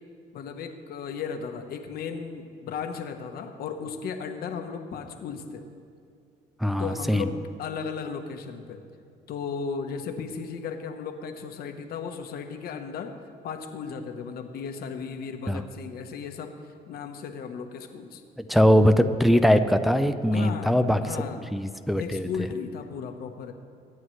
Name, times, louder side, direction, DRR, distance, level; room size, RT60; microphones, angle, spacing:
voice 1, 0.3-5.7 6.8-8.8 9.3-13.2 13.4-16.5 16.9-18.2 20.3-21.5 22.0-23.5, left 6 dB, 65° left, 6 dB, 1.2 m, -35 dB
voice 2, 6.6-7.3 15.5-15.6 18.4-21.0 21.5-22.3, equal, ahead, 8 dB, 0.6 m, -21 dB
22.5 x 9.5 x 3.2 m, 2.3 s
cardioid pair, 110°, 17 cm